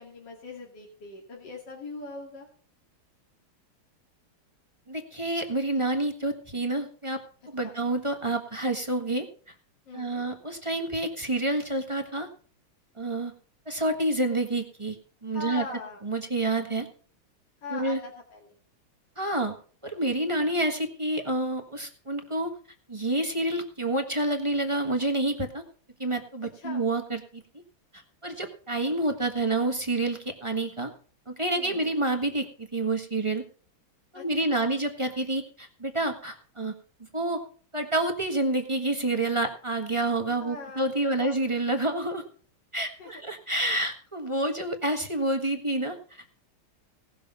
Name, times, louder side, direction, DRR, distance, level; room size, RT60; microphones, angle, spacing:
voice 1, 0.0-2.5 7.6-7.7 9.9-10.3 15.3-16.0 17.6-18.5 26.5-26.8 31.5-31.9 34.1-34.8 40.4-41.4 43.0-43.1, left 3 dB, 55° left, -1 dB, 2.9 m, -41 dB
voice 2, 4.9-7.2 7.5-9.3 9.9-12.3 13.0-13.3 13.7-15.0 15.2-15.6 16.0-16.9 17.7-18.0 19.2-19.5 19.8-22.5 22.9-25.6 26.0-27.4 27.9-30.9 31.3-33.4 34.1-36.7 37.1-37.4 37.7-42.2 42.7-46.4, right 2 dB, 15° right, 3 dB, 1.3 m, -28 dB
18.0 x 6.8 x 5.5 m, 0.43 s
omnidirectional pair, 2.3 m